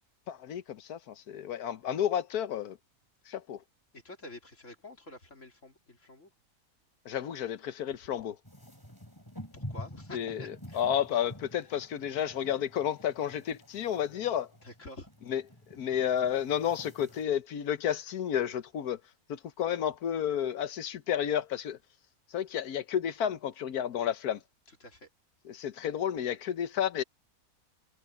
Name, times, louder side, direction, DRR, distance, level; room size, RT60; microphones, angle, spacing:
voice 1, 0.3-2.8 3.3-3.6 7.0-8.4 10.1-14.5 15.3-15.4 15.7-19.0 19.3-21.8 22.3-24.4 25.4-27.0, left 9 dB, 80° left, 1.5 m, -31 dB
voice 2, 3.9-6.3 9.5-10.8 14.6-15.1 24.7-25.1, left 2 dB, 55° left, 3.7 m, -48 dB
sound 1, 8.4-17.2, equal, 15° left, 5.3 m, -48 dB
omnidirectional pair, 1.6 m